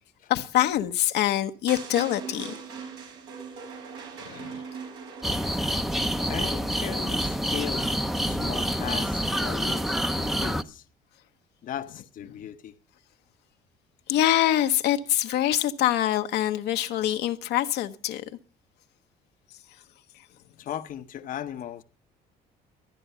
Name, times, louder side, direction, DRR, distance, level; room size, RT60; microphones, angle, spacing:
voice 1, 0.3-2.6 4.3-4.6 8.3-8.4 10.2-10.4 14.1-18.2, left 13 dB, 80° left, 1.0 m, -25 dB
sound 1, 1.7-5.9, right 6 dB, 90° right, 4.6 m, -40 dB
sound 2, 5.2-10.6, equal, ahead, 0.6 m, -27 dB
voice 2, 6.3-7.9 8.3-10.0 10.3-10.8 11.6-12.8 20.6-21.8, left 10 dB, 55° left, 0.8 m, -37 dB
13.5 x 10.0 x 5.5 m
cardioid pair, 110°, 17 cm